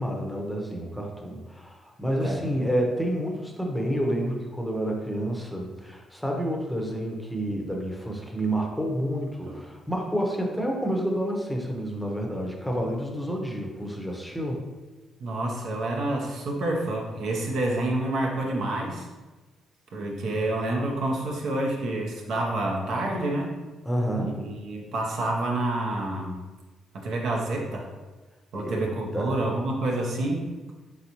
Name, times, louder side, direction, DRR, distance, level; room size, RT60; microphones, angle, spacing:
voice 1, 0.0-14.6 23.9-24.4 28.5-29.4, equal, ahead, 0 dB, 0.7 m, -29 dB
voice 2, 15.2-19.1 19.9-23.5 24.2-26.4 26.9-27.9 28.5-30.5, right 2 dB, 70° right, -1 dB, 0.8 m, -28 dB
4.0 x 3.6 x 2.9 m, 1.2 s
cardioid pair, 90°, 0 cm